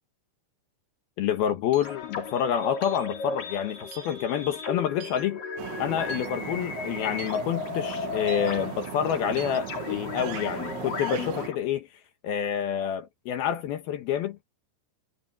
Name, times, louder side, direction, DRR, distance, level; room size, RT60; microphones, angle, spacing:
voice 1, 1.2-5.4 5.8-11.9 12.2-14.5, left 9 dB, 70° left, 2.6 m, -28 dB
sound 1, 1.7-2.0 2.8-3.1 3.9-4.2 5.0-5.3 6.1-6.3 7.2-7.4 8.3-8.5 9.4-9.6, right 11 dB, 90° right, 4.3 m, -44 dB
sound 2, 1.8-11.6, left 5 dB, 45° left, 5.4 m, -35 dB
sound 3, 5.6-11.5, right 14 dB, 70° right, 3.3 m, -38 dB
omnidirectional pair, 5.6 m